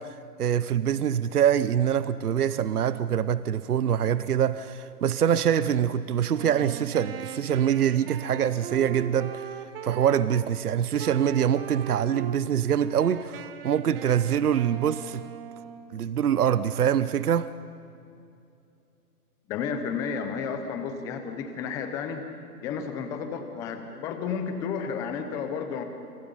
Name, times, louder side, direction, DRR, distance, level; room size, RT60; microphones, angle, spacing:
voice 1, 0.0-9.5 9.8-15.3 15.9-17.5, right 9 dB, 70° right, 15 dB, 0.9 m, -24 dB
Wind instrument woodwind instrument, 6.3-10.5 11.0-12.4 12.8-16.0, right 9 dB, 35° right, 1.6 m, -40 dB
voice 2, 19.5-22.2 22.6-25.8, left 6 dB, 5° left, 7 dB, 0.6 m, -32 dB
27.5 x 27.0 x 5.5 m, 2.6 s
hypercardioid pair, 145°, 46 cm